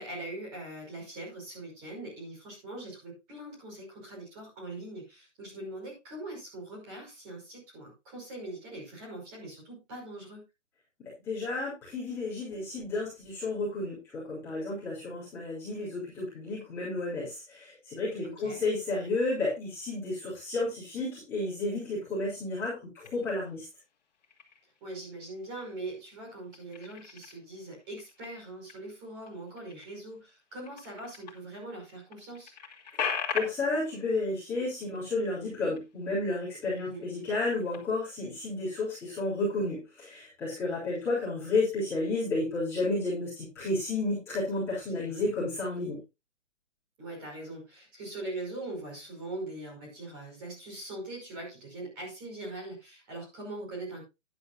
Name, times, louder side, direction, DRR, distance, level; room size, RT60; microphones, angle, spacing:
voice 1, 0.0-10.4 18.2-18.6 24.8-32.5 36.8-37.1 44.9-45.3 47.0-54.0, right 2 dB, 15° right, -1 dB, 5.3 m, -42 dB
voice 2, 11.3-23.6 33.3-46.0, left 2 dB, 5° left, -10 dB, 3.5 m, -32 dB
sound 1, 23.0-23.7 24.1-24.8 25.2-26.0 26.2-31.4 31.8-31.9 32.1-36.1 36.4-36.7 37.1-38.1, left 6 dB, 35° left, 2.9 m, -40 dB
12.5 x 11.0 x 2.6 m, 0.25 s
hypercardioid pair, 180°, 37 cm